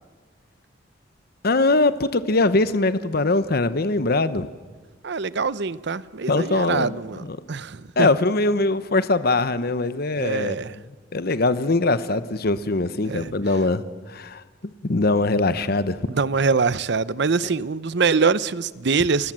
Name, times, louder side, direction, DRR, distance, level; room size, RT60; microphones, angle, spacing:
voice 1, 1.4-4.5 6.3-7.0 7.2-7.4 8.0-10.6 11.1-16.1, left 2 dB, 55° left, 1.0 m, -22 dB
voice 2, 5.0-8.1 10.1-10.8 13.0-13.3 16.1-19.3, right 4 dB, 65° right, 0.7 m, -24 dB
30.0 x 20.5 x 7.6 m
head